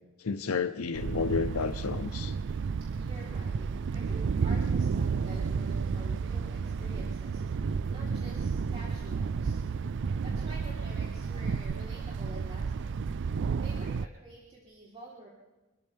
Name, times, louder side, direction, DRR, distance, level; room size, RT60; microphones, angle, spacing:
voice 1, 0.2-2.4, left 5 dB, 75° left, 10 dB, 0.6 m, -31 dB
Thunder, 0.9-14.1, right 5 dB, 55° right, 0.4 m, -31 dB
voice 2, 3.0-9.6 10.2-15.3, right 1 dB, 30° right, -5 dB, 3.7 m, -49 dB
27.0 x 13.5 x 3.5 m, 1.1 s
head